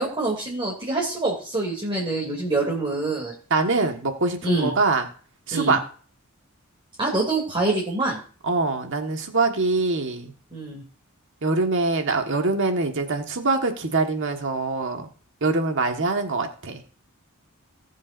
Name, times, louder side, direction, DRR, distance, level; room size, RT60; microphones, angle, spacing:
voice 1, 0.0-3.3 4.4-4.7 5.5-5.8 7.0-8.2 10.5-10.8, right 2 dB, 25° right, -4 dB, 2.8 m, -25 dB
voice 2, 3.5-5.1 5.5-5.8 8.4-10.3 11.4-15.1 15.4-16.8, right 3 dB, 60° right, 5 dB, 1.6 m, -24 dB
19.0 x 7.5 x 2.6 m, 0.41 s
head